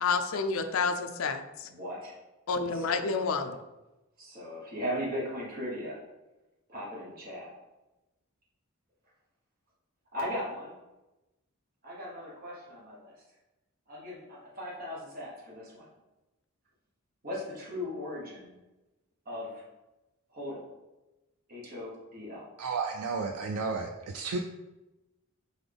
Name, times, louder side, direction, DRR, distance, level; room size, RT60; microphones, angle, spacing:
voice 1, 0.0-1.7 2.5-3.6, left 4 dB, 75° left, 8 dB, 0.4 m, -29 dB
voice 2, 1.6-2.2 2.7-3.1 4.2-6.0 6.7-7.5 10.1-10.7 11.8-13.2 13.9-15.9 17.2-18.6 19.2-19.6 20.3-20.7 21.5-22.5, equal, 40° right, -6 dB, 1.2 m, -38 dB
voice 3, 22.6-24.4, right 4 dB, 90° right, 3 dB, 0.4 m, -32 dB
4.0 x 3.8 x 3.4 m, 1.0 s
head